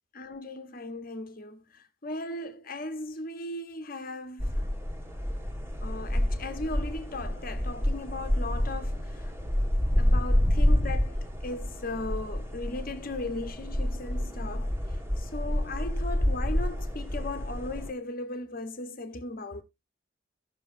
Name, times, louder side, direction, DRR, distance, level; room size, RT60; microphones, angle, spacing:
voice 1, 0.1-4.7 5.8-9.2 10.0-14.7 15.2-19.6, left 2 dB, 45° left, 1.2 m, -37 dB
sound 1, 4.4-17.9, equal, 10° right, 1.8 m, -28 dB
16.0 x 6.3 x 2.6 m
head